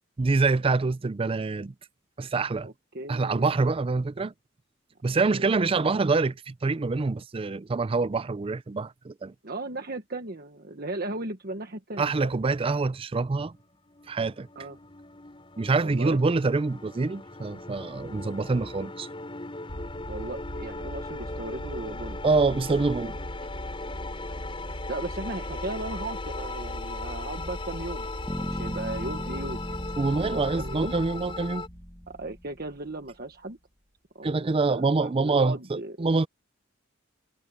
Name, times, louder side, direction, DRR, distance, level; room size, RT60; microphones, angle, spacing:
voice 1, 0.2-1.7 2.2-2.7 3.1-4.3 5.0-9.3 12.0-13.5 14.1-14.5 15.6-19.1 22.2-23.2 30.0-31.6 34.2-36.3, right 3 dB, 30° right, 0.4 m, -25 dB
voice 2, 2.6-3.5 5.1-6.0 9.4-12.3 14.5-14.8 15.8-16.2 20.1-22.2 24.9-29.6 30.2-30.9 32.1-33.6 34.1-36.3, right 2 dB, 50° right, 1.4 m, -37 dB
sound 1, 13.3-31.7, left 3 dB, 25° left, 5.1 m, -39 dB
sound 2, 19.7-33.0, equal, 80° left, 5.8 m, -39 dB
sound 3, 28.3-32.3, equal, 5° right, 1.3 m, -38 dB
head